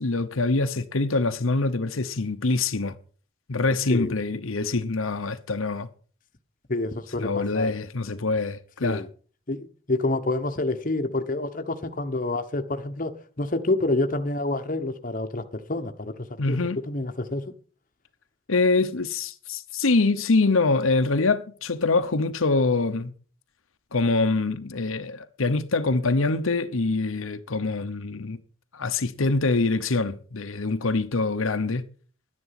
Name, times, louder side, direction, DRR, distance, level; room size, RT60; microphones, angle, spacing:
voice 1, 0.0-2.9 3.5-5.9 7.2-9.0 16.4-16.8 18.5-23.1 23.9-28.4 28.7-31.8, left 3 dB, 85° left, 1.0 m, -24 dB
voice 2, 6.7-7.7 8.8-9.1 9.5-16.6 16.9-17.5, left 2 dB, 40° left, 1.1 m, -28 dB
12.0 x 9.9 x 5.9 m
head